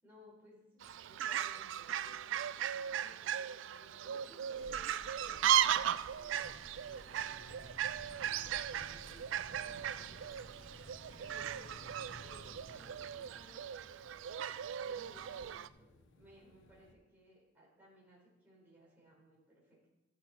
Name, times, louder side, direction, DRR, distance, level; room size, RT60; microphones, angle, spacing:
voice 1, 0.0-7.8 8.1-10.4 11.2-11.7 12.2-14.0 14.8-19.9, equal, 10° right, -7 dB, 4.2 m, -61 dB
Fowl, 0.8-15.7, right 10 dB, 70° right, 0.3 m, -37 dB
sound 1, 4.5-12.6, left 1 dB, 30° left, 2.6 m, -58 dB
sound 2, 6.5-16.9, left 2 dB, 70° left, 0.8 m, -58 dB
14.5 x 6.2 x 4.4 m, 1.0 s
head